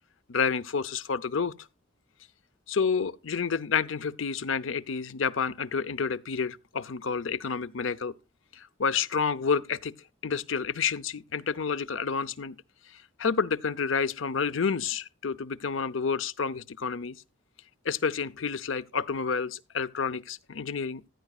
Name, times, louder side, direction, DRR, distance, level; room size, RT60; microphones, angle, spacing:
voice 1, 0.3-1.5 2.7-8.1 8.5-9.9 10.2-12.6 12.9-17.1 17.8-21.0, left 5 dB, 80° left, 0.7 m, -29 dB
15.0 x 9.2 x 2.4 m
head